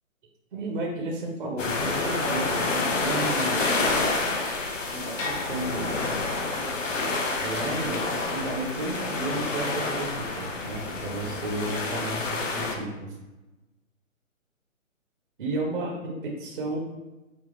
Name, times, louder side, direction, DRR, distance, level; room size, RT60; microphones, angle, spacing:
voice 1, 0.5-3.7 4.9-6.2 7.4-13.1 15.4-16.8, right 2 dB, 40° right, -1 dB, 0.6 m, -33 dB
sound 1, 1.6-12.7, left 3 dB, 65° left, 0.7 m, -28 dB
5.0 x 2.3 x 2.4 m, 1.1 s
figure-of-eight pair, 145°, 41 cm